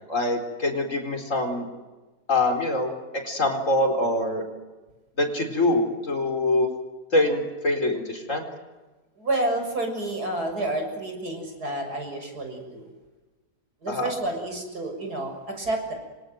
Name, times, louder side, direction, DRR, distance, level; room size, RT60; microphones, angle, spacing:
voice 1, 0.1-1.6 2.3-4.4 5.2-6.7 7.1-8.4 13.9-14.1, left 2 dB, 50° left, 3 dB, 4.6 m, -24 dB
voice 2, 9.2-12.8 13.8-15.9, right 1 dB, 70° right, 4 dB, 7.2 m, -29 dB
28.0 x 25.5 x 7.9 m, 1.2 s
omnidirectional pair, 1.7 m